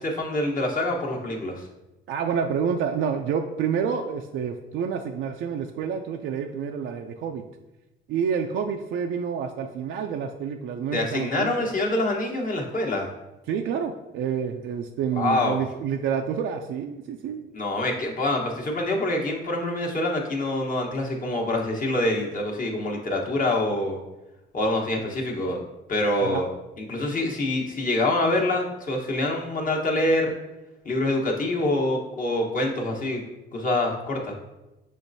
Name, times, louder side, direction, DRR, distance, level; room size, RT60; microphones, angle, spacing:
voice 1, 0.0-1.7 10.9-13.1 15.1-15.6 17.5-24.0 24.5-25.6 25.9-26.5 26.8-30.3 30.8-33.2 33.5-34.3, left 1 dB, 45° left, 0 dB, 1.0 m, -25 dB
voice 2, 2.1-7.4 8.1-11.7 13.5-17.5 26.2-26.4, right 7 dB, 80° right, 3 dB, 0.4 m, -28 dB
6.3 x 3.2 x 2.6 m, 1.0 s
cardioid pair, 90°, 20 cm